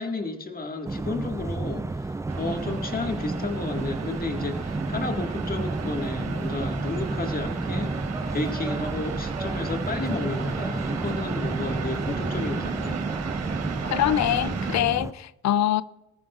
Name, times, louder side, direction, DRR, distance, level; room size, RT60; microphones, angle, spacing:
voice 1, 0.0-8.0 8.3-13.0 13.8-13.9, left 3 dB, 30° left, 1.9 m, -32 dB
sound 1, 0.8-15.1, right 2 dB, 10° right, 0.4 m, -31 dB
sound 2, 2.3-14.8, right 7 dB, 55° right, 1.5 m, -36 dB
voice 2, 13.9-15.8, left 12 dB, 65° left, 0.5 m, -24 dB
20.5 x 13.5 x 2.5 m
cardioid pair, 90°, 30 cm